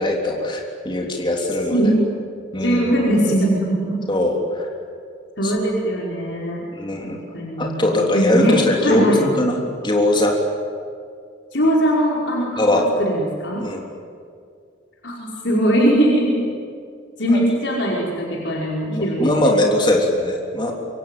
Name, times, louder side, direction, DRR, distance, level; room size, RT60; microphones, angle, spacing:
voice 1, 0.0-1.8 2.5-2.9 4.1-4.7 5.4-5.5 6.7-7.2 7.6-10.3 12.6-12.8 13.6-13.8 18.9-20.7, left 1 dB, 25° left, 0 dB, 3.5 m, -20 dB
voice 2, 1.7-2.0 2.6-4.0 5.4-6.6 7.3-9.2 11.5-13.6 15.0-16.5 17.2-19.3, right 1 dB, 65° left, -3 dB, 5.2 m, -20 dB
26.0 x 24.5 x 9.2 m, 2.3 s
head